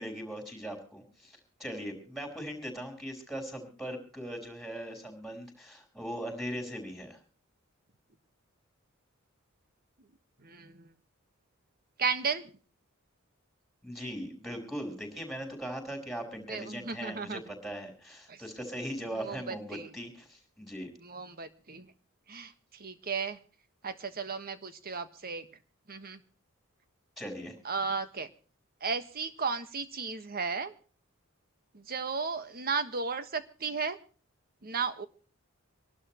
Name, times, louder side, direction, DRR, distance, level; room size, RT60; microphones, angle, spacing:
voice 1, 0.0-7.2 13.8-20.9 27.2-27.6, equal, ahead, 4 dB, 5.1 m, -40 dB
voice 2, 10.4-10.9 12.0-12.5 16.5-17.4 18.3-18.4 19.1-19.9 21.0-21.9 22.3-23.4 23.8-25.5 25.9-26.2 27.6-28.3 28.8-30.7 31.7-34.0 34.6-35.1, right 5 dB, 45° right, 11 dB, 1.4 m, -34 dB
26.0 x 12.0 x 3.0 m, 0.40 s
head